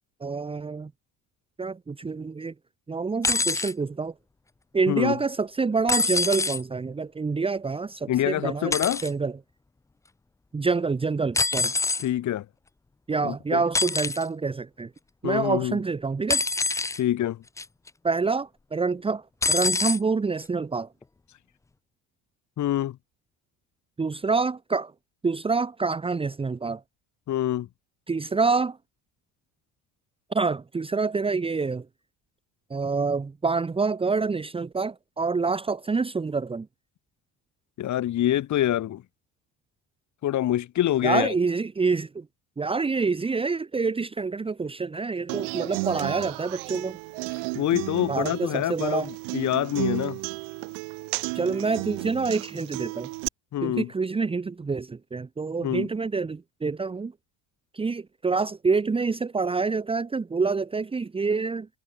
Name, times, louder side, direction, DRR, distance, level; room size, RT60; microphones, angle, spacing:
voice 1, 0.2-0.9 1.6-2.5 2.9-4.1 4.7-8.7 9.0-9.3 10.5-11.7 13.1-14.9 15.2-16.4 18.0-20.9 24.0-24.9 25.2-26.8 28.1-28.8 30.3-31.9 32.7-36.7 41.0-42.3 42.6-47.0 48.1-49.1 51.4-53.1 53.6-57.1 57.7-61.7, right 4 dB, 10° right, 1.9 m, -27 dB
sound 1, 3.2-3.7 5.9-6.6 8.7-9.1 11.4-12.1 13.7-14.2 16.3-17.0 17.6-17.9 19.4-20.0 21.0-21.1, left 3 dB, 5° left, 0.7 m, -25 dB
voice 2, 8.1-9.0 12.0-12.5 13.2-13.6 15.2-15.8 17.0-17.4 22.6-23.0 27.3-27.7 37.8-39.0 40.2-41.3 47.6-49.1 49.3-50.2 53.5-53.9 55.6-55.9, left 12 dB, 35° left, 5.0 m, -25 dB
Human voice / Acoustic guitar, 45.3-53.3, right 31 dB, 70° right, 3.8 m, -33 dB
cardioid pair, 180°, 48 cm